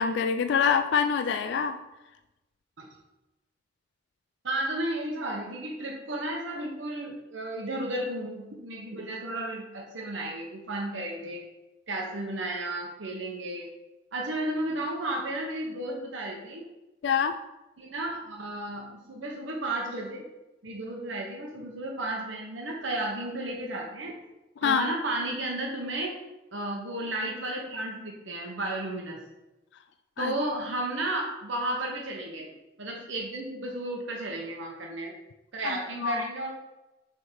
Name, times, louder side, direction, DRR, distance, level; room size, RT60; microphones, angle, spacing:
voice 1, 0.0-1.8 17.0-17.4 24.6-24.9 30.2-30.3 35.6-36.2, left 6 dB, 65° left, 9 dB, 0.3 m, -26 dB
voice 2, 4.4-11.4 11.9-13.7 14.1-16.7 17.8-20.2 20.6-24.2 24.6-26.2 26.5-29.2 30.2-32.5 32.8-35.1 35.5-36.5, right 1 dB, 80° right, -1 dB, 1.0 m, -33 dB
6.2 x 3.6 x 4.6 m, 0.99 s
head